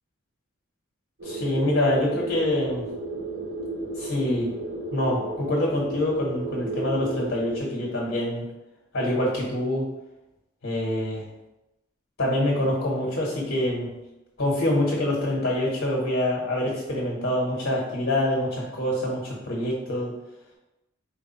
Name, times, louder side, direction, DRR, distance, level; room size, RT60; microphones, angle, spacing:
voice 1, 1.2-2.8 4.0-4.5 4.9-8.4 8.9-9.9 10.6-11.2 12.2-13.9 14.4-20.1, left 1 dB, 70° left, -3 dB, 1.4 m, -25 dB
sound 1, 1.2-7.6, right 2 dB, 60° right, 0.8 m, -33 dB
4.8 x 2.3 x 4.2 m, 0.96 s
head